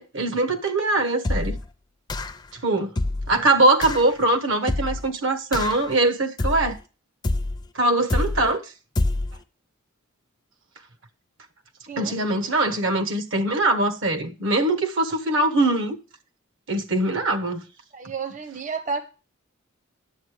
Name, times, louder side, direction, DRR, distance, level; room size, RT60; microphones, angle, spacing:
voice 1, 0.0-1.6 2.5-2.9 3.3-6.8 7.7-8.6 12.0-16.0 16.7-17.6, right 2 dB, 65° right, 1.1 m, -22 dB
sound 1, 1.2-1.7 2.1-2.5 3.0-3.4 3.8-4.1 4.7-5.1 5.5-5.9 6.4-6.8 7.2-7.7 8.1-8.5 9.0-9.4, left 2 dB, 20° left, 0.5 m, -26 dB
voice 2, 17.9-19.0, right 5 dB, 35° right, 0.8 m, -31 dB
9.4 x 7.3 x 4.8 m
head